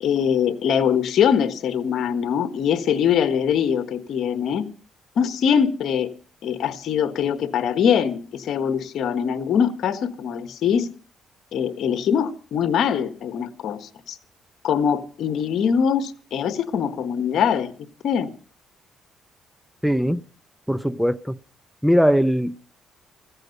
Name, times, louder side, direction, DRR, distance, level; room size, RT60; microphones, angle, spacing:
voice 1, 0.0-4.7 5.2-6.1 6.4-10.9 11.5-14.2 14.6-17.7 18.0-18.3, left 8 dB, 70° left, 1.4 m, -22 dB
voice 2, 19.8-20.2 20.7-21.4 21.8-22.6, equal, ahead, 0.7 m, -20 dB
15.5 x 15.0 x 5.4 m
cardioid pair, 90°, 0 cm